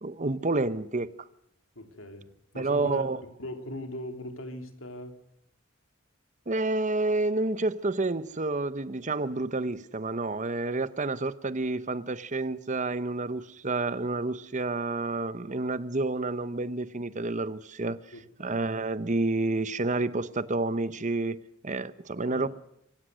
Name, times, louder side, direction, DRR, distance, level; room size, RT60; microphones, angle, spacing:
voice 1, 0.0-1.1 2.6-3.2 6.5-18.0 18.4-22.5, right 2 dB, 35° right, 0.9 m, -29 dB
voice 2, 1.7-5.2 18.1-18.6 22.2-22.5, left 1 dB, 70° left, 3.2 m, -40 dB
25.5 x 16.5 x 6.4 m
head